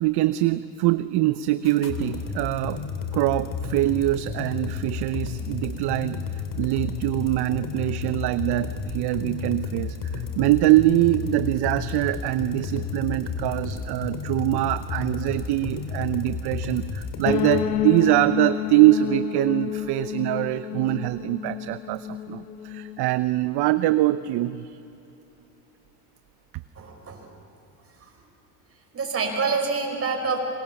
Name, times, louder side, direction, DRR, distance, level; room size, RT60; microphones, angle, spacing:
voice 1, 0.0-2.8 3.1-24.8, right 16 dB, 55° right, 13 dB, 0.7 m, -23 dB
sound 1, 1.6-17.6, left 5 dB, 40° left, 3.0 m, -32 dB
sound 2, 17.2-23.1, left 10 dB, 90° left, 1.3 m, -30 dB
voice 2, 26.7-27.2 28.0-28.2 28.9-30.4, right 4 dB, 30° right, 2 dB, 5.4 m, -27 dB
27.0 x 23.0 x 7.1 m, 2.9 s
supercardioid pair, 105°, 48 cm